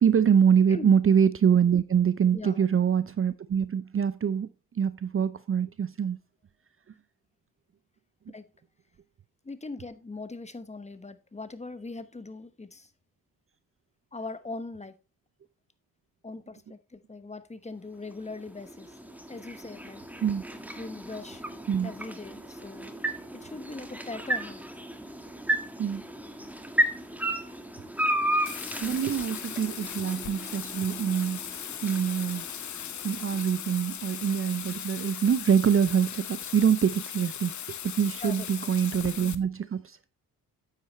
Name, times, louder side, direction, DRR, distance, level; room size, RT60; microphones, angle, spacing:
voice 1, 0.0-4.5 4.7-6.2 20.2-20.4 21.7-21.9 25.8-26.0 28.8-31.5 31.8-32.4 33.0-40.0, right 7 dB, 35° right, 0.6 m, -25 dB
voice 2, 2.3-2.6 8.3-8.4 9.4-12.9 14.1-14.9 16.2-18.9 19.3-20.0 20.8-21.4 21.8-23.0 23.3-24.6 27.2-27.3 38.2-38.5, left 3 dB, 15° left, 1.0 m, -40 dB
sound 1, 17.9-34.1, right 1 dB, 5° right, 1.6 m, -34 dB
Bathtub (filling or washing), 28.4-39.3, left 9 dB, 45° left, 0.9 m, -38 dB
9.1 x 8.2 x 3.2 m
supercardioid pair, 55°, 40 cm